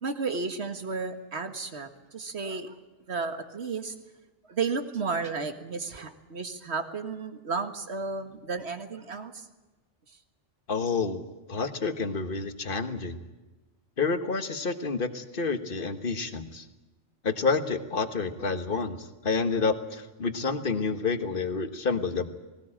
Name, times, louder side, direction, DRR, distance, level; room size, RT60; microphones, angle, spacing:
voice 1, 0.0-2.7 3.1-3.9 4.5-9.5, right 4 dB, 60° right, 8 dB, 2.0 m, -33 dB
voice 2, 10.7-11.2 11.5-13.2 14.0-16.6 17.2-22.3, left 4 dB, 45° left, 9 dB, 1.6 m, -29 dB
20.0 x 19.0 x 8.7 m, 1.1 s
omnidirectional pair, 1.2 m